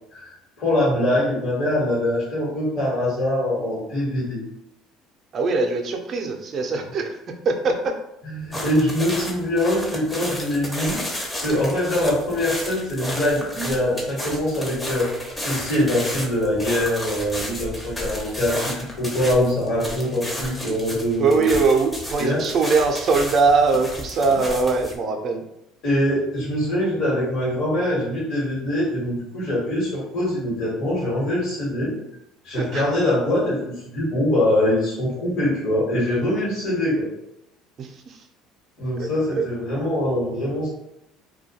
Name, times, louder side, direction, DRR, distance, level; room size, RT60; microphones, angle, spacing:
voice 1, 0.1-4.4 8.3-11.0 11.3-15.1 15.4-21.5 22.2-22.4 25.8-31.9 32.4-37.1 38.8-40.7, left 1 dB, 55° left, -6 dB, 1.1 m, -23 dB
voice 2, 5.3-7.2 7.4-8.0 21.2-25.4 32.5-32.9 37.8-38.2 39.0-39.1 39.4-39.5, right 4 dB, 45° right, 4 dB, 0.4 m, -21 dB
sound 1, 8.5-24.9, left 1 dB, 15° left, 0.6 m, -32 dB
2.2 x 2.2 x 2.8 m, 0.82 s
supercardioid pair, 90°, 0 cm